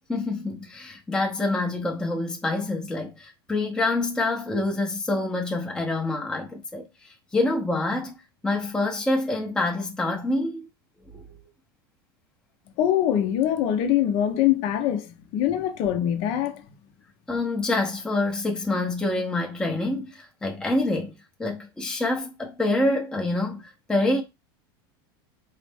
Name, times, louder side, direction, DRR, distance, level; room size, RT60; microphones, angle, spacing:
voice 1, 0.1-8.1 8.4-10.7 11.1-11.2 17.3-21.1 21.4-24.2, left 2 dB, 5° left, 0.7 m, -26 dB
voice 2, 12.8-16.6, left 11 dB, 50° left, 0.7 m, -23 dB
4.0 x 2.1 x 3.4 m
supercardioid pair, 120°, 13 cm